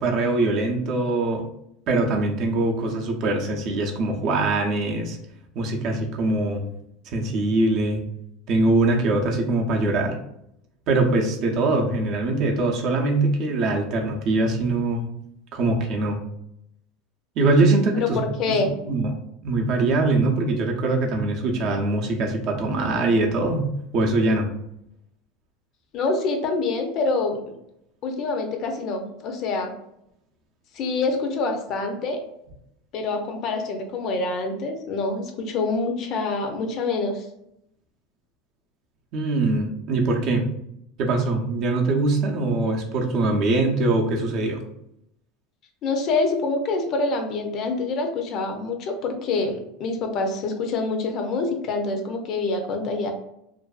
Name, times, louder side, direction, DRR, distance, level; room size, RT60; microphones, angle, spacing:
voice 1, 0.0-1.4 1.9-5.2 5.5-6.6 7.1-8.0 8.5-10.1 10.9-15.1 15.5-16.2 17.4-18.2 18.5-19.1 19.4-24.5 39.1-40.4 41.0-44.6, right 2 dB, 50° right, 1 dB, 0.5 m, -22 dB
voice 2, 17.9-18.7 25.9-27.4 28.0-29.7 30.7-32.2 32.9-37.3 45.8-53.1, left 3 dB, 50° left, 4 dB, 0.5 m, -26 dB
2.5 x 2.3 x 2.3 m, 0.79 s
supercardioid pair, 120°, 0 cm